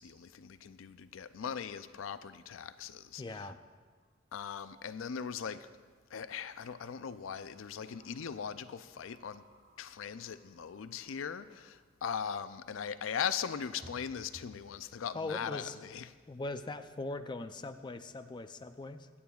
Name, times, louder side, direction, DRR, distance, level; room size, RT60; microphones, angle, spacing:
voice 1, 0.0-3.2 4.3-5.7 6.1-9.4 9.8-16.1, left 7 dB, 90° left, 12 dB, 0.4 m, -39 dB
voice 2, 3.2-3.6 15.1-15.8 16.3-19.1, left 2 dB, 25° left, 8 dB, 0.4 m, -40 dB
sound 1, 4.0-4.1 4.5-4.6 6.4-6.7 7.5-11.8 13.0-13.1 13.6-14.7, equal, 55° right, 1.9 m, -60 dB
24.5 x 8.6 x 2.4 m, 1.5 s
head